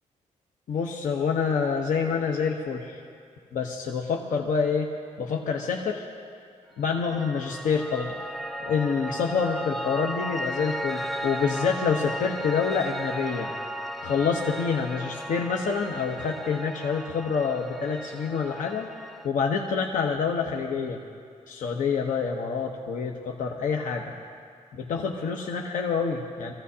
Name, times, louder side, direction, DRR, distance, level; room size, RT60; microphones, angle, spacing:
voice 1, 0.7-3.0 3.5-4.9 5.2-6.1 6.8-8.2 8.6-13.5 14.0-18.9 19.2-21.0 21.5-24.1 24.7-26.5, left 5 dB, 75° left, 1 dB, 1.0 m, -27 dB
Piano, 7.0-19.3, equal, ahead, 0.4 m, -35 dB
24.0 x 15.0 x 2.8 m, 2.2 s
wide cardioid pair, 145°, 13 cm